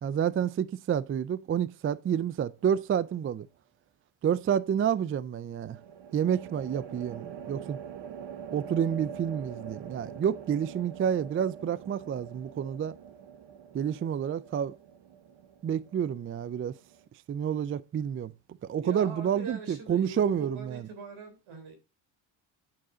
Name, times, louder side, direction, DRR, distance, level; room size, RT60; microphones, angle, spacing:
voice 1, 0.0-3.5 4.2-5.8 6.1-7.8 8.5-12.9 13.7-14.7 15.6-16.8 17.3-18.3 18.6-20.9, right 8 dB, 30° right, 0.3 m, -29 dB
sound 1, 2.6-3.2 5.7-17.1, right 8 dB, 60° right, 1.0 m, -45 dB
voice 2, 18.8-21.8, right 5 dB, 75° right, 3.5 m, -43 dB
8.7 x 6.2 x 3.8 m
cardioid pair, 90°, 49 cm